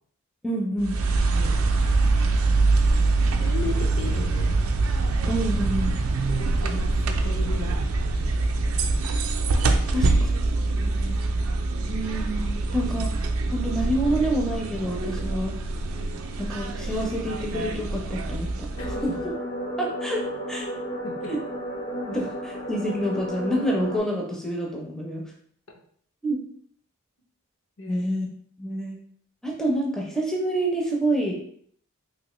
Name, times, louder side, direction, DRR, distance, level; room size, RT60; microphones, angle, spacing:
voice 1, 0.4-1.0 5.3-5.9 9.9-10.3 11.9-13.1 13.5-15.6 16.4-18.7 19.2-19.3 19.8-20.7 21.3-21.4 22.1-25.3 26.2-26.4 27.9-28.3 28.6-29.0 29.4-31.4, right 1 dB, 5° left, -2 dB, 0.4 m, -27 dB
sound 1, 0.8-19.2, right 3 dB, 75° right, 0.4 m, -24 dB
voice 2, 1.3-1.6 3.4-4.5 6.3-8.3 8.6-9.2 10.8-11.2 18.8-19.2 21.0-21.3 27.8-28.0, left 3 dB, 70° left, 1 dB, 0.7 m, -37 dB
sound 2, 18.8-24.0, equal, 85° left, 1.0 m, -33 dB
3.1 x 2.5 x 2.9 m, 0.63 s
head